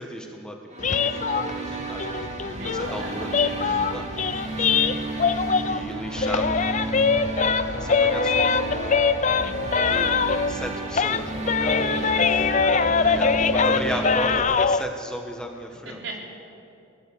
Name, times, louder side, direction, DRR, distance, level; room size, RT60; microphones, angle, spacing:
voice 1, 0.0-2.3 2.6-4.1 5.7-6.8 7.8-9.0 9.9-10.2 10.5-11.8 13.1-16.0, equal, 5° left, 2 dB, 1.4 m, -35 dB
sound 1, 0.7-14.4, right 3 dB, 35° right, 2.3 m, -32 dB
sound 2, 0.8-5.9 6.2-10.7 10.9-14.8, left 5 dB, 35° left, 0.5 m, -23 dB
sound 3, 1.7-13.5, left 1 dB, 60° left, 1.2 m, -42 dB
voice 2, 2.6-3.2 11.8-13.5 13.9-14.2 15.8-16.2, right 2 dB, 65° right, -1 dB, 4.2 m, -37 dB
23.5 x 18.5 x 7.2 m, 2.7 s
head